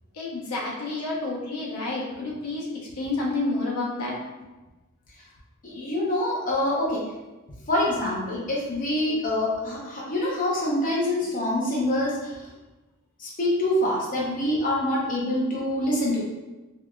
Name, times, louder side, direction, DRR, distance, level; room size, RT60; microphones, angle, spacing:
voice 1, 0.1-2.7 3.0-4.2, left 2 dB, 80° left, -3 dB, 0.8 m, -29 dB
voice 2, 5.6-7.0 7.7-12.5 13.2-16.2, left 1 dB, 40° left, -5 dB, 0.7 m, -25 dB
4.6 x 2.4 x 2.3 m, 1.1 s
head